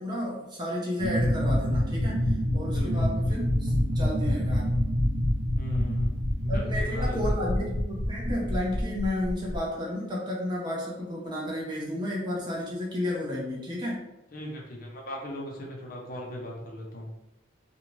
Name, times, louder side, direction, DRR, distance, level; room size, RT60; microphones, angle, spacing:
voice 1, 0.0-4.8 6.5-14.0, left 1 dB, 20° right, -4 dB, 0.5 m, -32 dB
sound 1, 1.0-9.6, equal, 70° right, 0.6 m, -27 dB
voice 2, 2.6-3.1 5.6-7.4 14.3-17.1, equal, 45° left, -1 dB, 0.5 m, -38 dB
2.6 x 2.1 x 3.0 m, 0.90 s
head